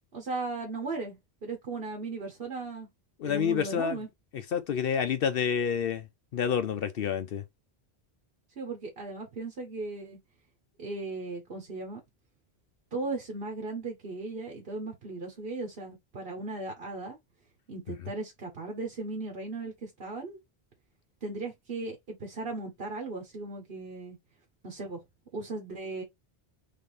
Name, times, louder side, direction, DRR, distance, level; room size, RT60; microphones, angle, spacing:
voice 1, 0.1-2.9 3.2-4.1 8.6-10.2 10.8-12.0 12.9-17.2 17.7-20.4 21.2-24.2 24.6-25.0 25.3-26.0, right 3 dB, 65° right, 1.4 m, -37 dB
voice 2, 3.2-4.0 4.5-6.1 6.3-7.4, left 7 dB, 65° left, 0.8 m, -28 dB
3.7 x 3.7 x 3.9 m
omnidirectional pair, 1.1 m